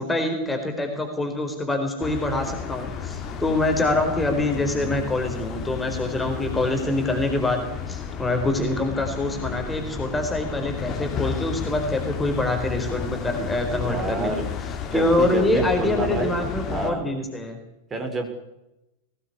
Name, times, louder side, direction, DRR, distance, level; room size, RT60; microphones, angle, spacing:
voice 1, 0.0-14.3 14.9-17.6, left 2 dB, 10° left, 3 dB, 4.4 m, -25 dB
sound 1, 2.0-16.9, left 6 dB, 30° left, 2.7 m, -32 dB
voice 2, 13.8-14.5 14.9-16.4 16.7-17.1 17.9-18.3, right 3 dB, 20° right, 4 dB, 5.3 m, -28 dB
22.5 x 18.0 x 8.7 m, 0.92 s
figure-of-eight pair, 90°, 0 cm